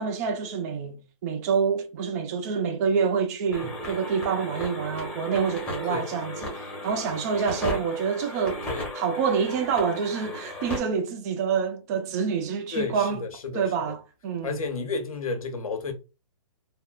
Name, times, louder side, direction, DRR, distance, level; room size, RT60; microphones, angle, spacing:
voice 1, 0.0-8.6 8.9-13.2 13.5-14.6, right 6 dB, 30° right, 0.4 m, -27 dB
sound 1, 3.5-10.8, left 1 dB, 5° left, 0.8 m, -35 dB
voice 2, 12.7-13.9 14.4-15.9, left 4 dB, 85° left, 0.9 m, -32 dB
3.5 x 2.1 x 2.3 m
hypercardioid pair, 145°, 18 cm